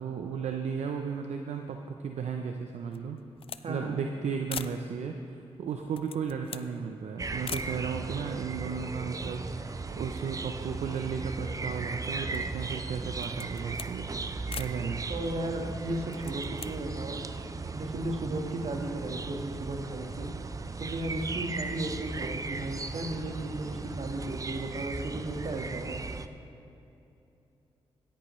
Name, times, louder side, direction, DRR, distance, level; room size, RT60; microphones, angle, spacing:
voice 1, 0.0-3.2 3.7-5.2 5.6-14.1 14.6-15.0, right 6 dB, 75° right, 4 dB, 0.6 m, -34 dB
sound 1, 2.9-3.7 4.0-4.1 4.5-4.8 5.7-6.7 7.4-7.7 8.5-8.6 8.8-9.7 10.0-11.3 11.8-12.6 13.1-14.0 14.5-14.8 16.0-16.7, left 7 dB, 55° left, 0.4 m, -42 dB
voice 2, 3.6-4.0 15.1-17.2 17.7-20.3 20.8-26.1, right 1 dB, 60° right, 3 dB, 1.5 m, -35 dB
sound 2, 7.2-26.3, right 4 dB, 30° right, 0.5 m, -37 dB
16.5 x 10.0 x 3.2 m, 2.8 s
cardioid pair, 65°, 12 cm